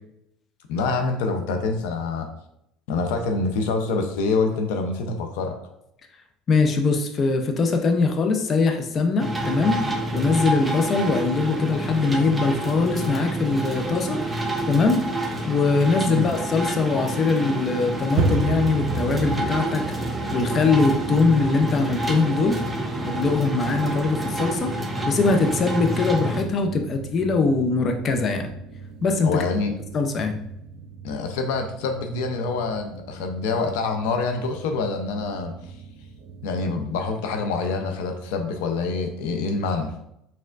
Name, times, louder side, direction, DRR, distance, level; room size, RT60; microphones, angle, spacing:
voice 1, 0.7-2.3 2.9-5.6 16.0-16.3 29.2-29.7 31.0-35.5 36.4-39.9, left 4 dB, 85° left, 5 dB, 0.6 m, -26 dB
voice 2, 6.5-9.9 10.1-14.2 14.7-15.0 15.5-19.8 20.3-22.6 23.0-28.5 29.0-29.4 29.9-30.4, left 4 dB, 35° left, 5 dB, 0.6 m, -22 dB
sound 1, 9.2-26.4, right 1 dB, 10° right, 0.7 m, -28 dB
sound 2, 18.0-37.9, right 4 dB, 65° right, 0.6 m, -35 dB
4.5 x 3.5 x 2.5 m, 0.77 s
supercardioid pair, 120°, 0 cm